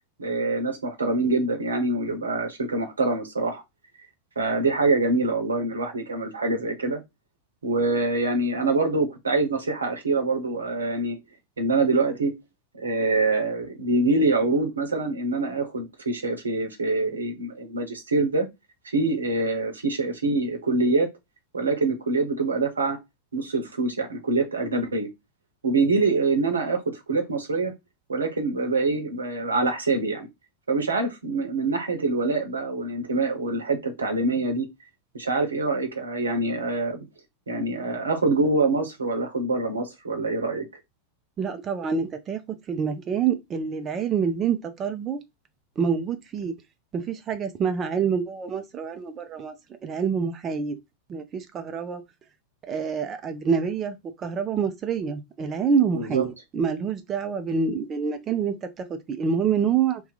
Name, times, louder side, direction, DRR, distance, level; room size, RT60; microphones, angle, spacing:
voice 1, 0.2-3.6 4.4-7.0 7.6-11.2 11.6-12.3 12.7-18.5 18.8-21.1 21.5-23.0 23.3-25.1 25.6-27.7 28.1-30.3 30.7-34.7 35.1-37.0 37.5-40.6 55.9-56.3, right 3 dB, 75° right, 0.9 m, -25 dB
voice 2, 41.4-42.4 42.7-45.2 45.8-46.5 46.9-49.5 49.8-50.8 51.1-52.0 52.7-60.0, right 6 dB, 25° right, 0.7 m, -26 dB
2.8 x 2.4 x 3.9 m
figure-of-eight pair, 90°, 0 cm